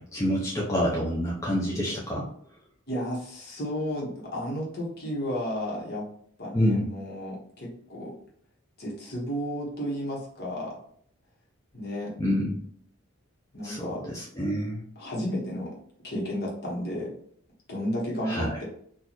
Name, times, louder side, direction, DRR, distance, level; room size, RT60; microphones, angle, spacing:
voice 1, 0.0-2.3 6.5-6.9 12.2-12.6 13.6-14.8 18.2-18.6, equal, 15° left, -5 dB, 0.6 m, -27 dB
voice 2, 2.9-6.1 6.4-8.1 8.8-10.8 11.7-12.1 13.5-14.0 15.0-15.8 16.0-17.1 17.7-18.6, equal, 50° left, -4 dB, 1.3 m, -32 dB
4.1 x 2.6 x 3.0 m, 0.65 s
head